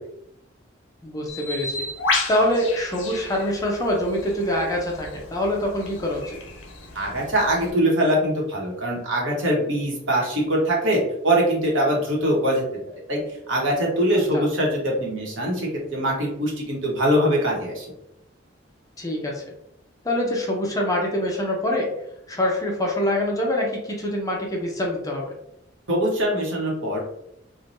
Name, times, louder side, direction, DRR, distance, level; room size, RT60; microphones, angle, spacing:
voice 1, 1.0-1.9 2.3-6.4 14.3-14.4 19.0-19.4 20.0-21.9 22.3-25.3, left 1 dB, 20° left, -1 dB, 0.6 m, -25 dB
Bird, 1.3-7.7, left 3 dB, 70° left, 0.6 m, -32 dB
voice 2, 6.9-12.6 13.1-13.2 13.5-17.9 25.9-27.0, right 1 dB, 75° right, -3 dB, 1.0 m, -22 dB
3.1 x 2.1 x 2.6 m, 0.77 s
head